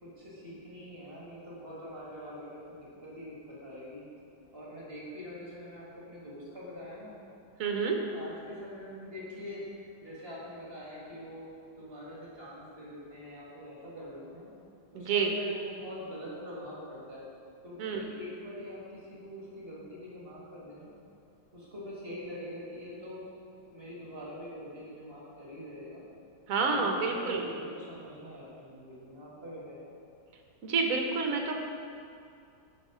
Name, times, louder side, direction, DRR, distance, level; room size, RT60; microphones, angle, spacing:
voice 1, 0.0-4.0 4.5-7.1 7.8-11.5 11.8-14.5 14.9-17.2 17.6-20.9 21.5-23.3 23.6-26.1 26.6-29.9, left 1 dB, 35° right, -6 dB, 1.9 m, -44 dB
voice 2, 7.6-8.0 14.9-15.3 17.8-18.0 26.5-27.5 30.6-31.6, right 4 dB, 55° right, 2 dB, 1.2 m, -29 dB
9.5 x 5.5 x 5.0 m, 2.5 s
omnidirectional pair, 2.0 m